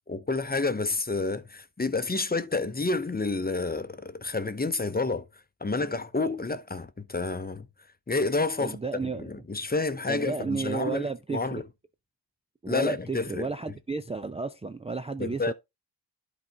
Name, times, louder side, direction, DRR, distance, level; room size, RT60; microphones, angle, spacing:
voice 1, 0.1-5.3 5.6-7.7 8.1-11.6 12.7-13.5 15.2-15.5, left 3 dB, 20° left, 0.8 m, -29 dB
voice 2, 8.6-9.3 10.1-11.6 12.6-15.5, right 4 dB, 15° right, 0.5 m, -32 dB
11.5 x 4.1 x 3.5 m
cardioid pair, 60°, 46 cm